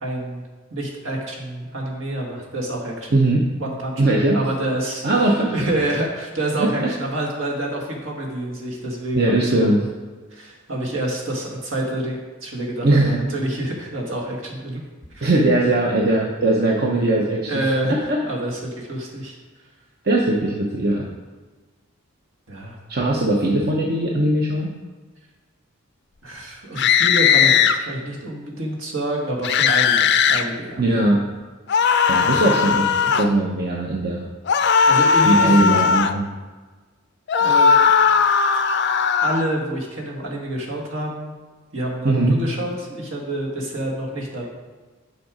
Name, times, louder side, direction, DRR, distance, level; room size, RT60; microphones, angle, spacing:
voice 1, 0.0-0.4 0.7-3.1 3.6-9.7 10.3-14.8 15.1-15.3 17.5-17.9 18.2-19.4 22.5-22.8 26.2-30.8 34.9-35.7 37.4-37.8 39.2-41.3 41.7-44.5, right 1 dB, 70° right, -1 dB, 1.8 m, -27 dB
voice 2, 3.1-3.5 4.0-4.4 5.0-5.7 6.6-6.9 9.1-9.8 12.8-13.2 15.2-17.6 17.9-18.2 20.0-21.0 22.9-24.7 30.8-31.2 32.1-34.3 35.2-36.3 42.0-42.4, right 2 dB, 50° right, -1 dB, 0.8 m, -19 dB
sound 1, 26.8-27.8 29.4-30.4 31.7-33.3 34.5-36.2 37.3-39.4, left 6 dB, 55° left, 0.4 m, -17 dB
6.8 x 6.4 x 5.0 m, 1.3 s
head